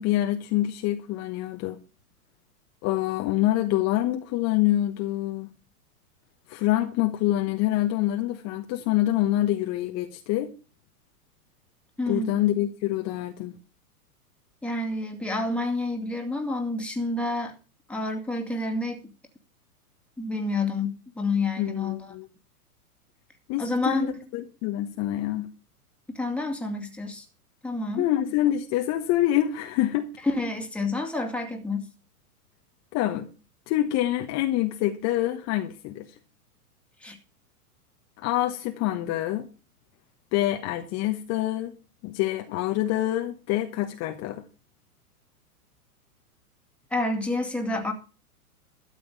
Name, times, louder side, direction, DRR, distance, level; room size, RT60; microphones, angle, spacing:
voice 1, 0.0-1.8 2.8-5.5 6.5-10.5 12.1-13.5 21.6-22.2 23.5-25.5 28.0-30.1 32.9-33.3 33.7-36.1 38.2-39.5 40.3-41.7 42.0-44.4, left 14 dB, 35° left, 1.2 m, -26 dB
voice 2, 12.0-12.4 14.6-17.5 17.9-19.1 20.2-22.1 23.6-24.2 26.1-27.3 27.6-28.1 30.2-31.9 37.0-37.2 46.9-47.9, left 2 dB, 5° left, 2.1 m, -29 dB
12.5 x 7.0 x 6.8 m
hypercardioid pair, 110°, 45 cm